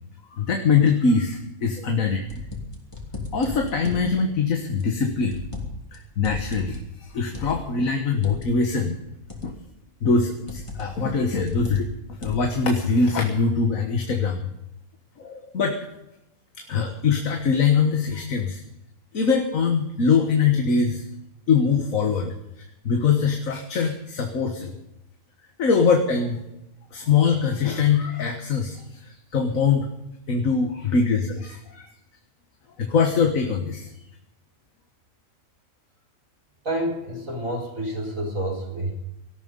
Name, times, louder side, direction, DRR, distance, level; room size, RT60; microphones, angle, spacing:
voice 1, 0.4-2.2 3.3-5.4 5.9-9.0 9.4-9.5 10.0-11.9 12.2-14.5 15.2-15.8 16.7-18.6 19.1-21.0 21.5-22.3 22.9-24.7 25.6-26.4 26.9-29.9 30.3-31.9 32.8-33.9, left 5 dB, 70° left, 4 dB, 1.8 m, -22 dB
sound 1, 2.3-4.1 4.8-5.9 6.2-8.5 9.3-9.7 10.5-11.0 11.5-12.6, left 3 dB, 20° left, 3.1 m, -35 dB
voice 2, 36.6-38.9, right 1 dB, 65° right, -1 dB, 4.9 m, -29 dB
18.5 x 13.5 x 5.4 m, 0.89 s
omnidirectional pair, 1.5 m